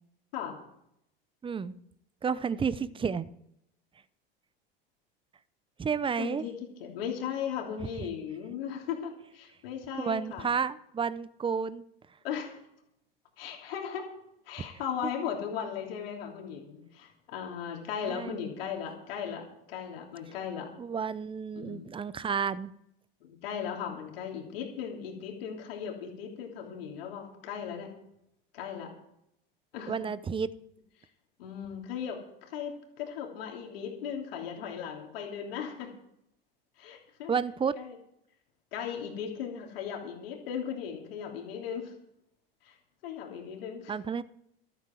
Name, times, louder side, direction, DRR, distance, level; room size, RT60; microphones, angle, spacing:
voice 1, 1.4-1.7 2.2-3.2 5.8-6.5 10.0-11.8 14.6-14.7 15.0-15.1 18.1-18.4 20.8-22.7 29.9-30.5 37.3-37.8 43.9-44.2, right 6 dB, 15° right, 17 dB, 0.6 m, -31 dB
voice 2, 6.2-10.5 12.2-12.5 13.4-14.1 14.5-20.7 21.5-21.9 23.2-27.9 28.5-28.9 29.7-29.9 31.4-35.9 36.8-37.3 37.7-38.0 38.7-41.9 42.6-42.7 43.0-43.9, left 8 dB, 75° left, 1 dB, 3.1 m, -37 dB
13.5 x 13.0 x 4.5 m, 0.77 s
hypercardioid pair, 95°, 29 cm